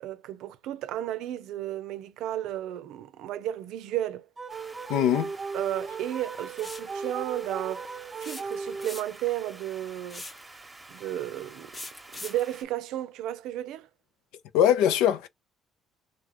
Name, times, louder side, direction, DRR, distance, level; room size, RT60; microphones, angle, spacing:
voice 1, 0.0-4.3 5.5-10.3 10.9-11.7 12.1-13.9, right 13 dB, 80° right, 0.5 m, -33 dB
sound 1, 4.4-9.3, right 4 dB, 30° right, 0.5 m, -37 dB
sound 2, 4.5-12.6, right 2 dB, 10° right, 0.9 m, -49 dB
voice 2, 4.9-5.3 14.5-15.3, left 10 dB, 85° left, 0.5 m, -22 dB
sound 3, 6.6-6.9 8.2-9.3 10.1-10.5 11.7-12.5, left 2 dB, 20° left, 0.7 m, -41 dB
3.0 x 2.2 x 3.8 m
cardioid pair, 95°, 0 cm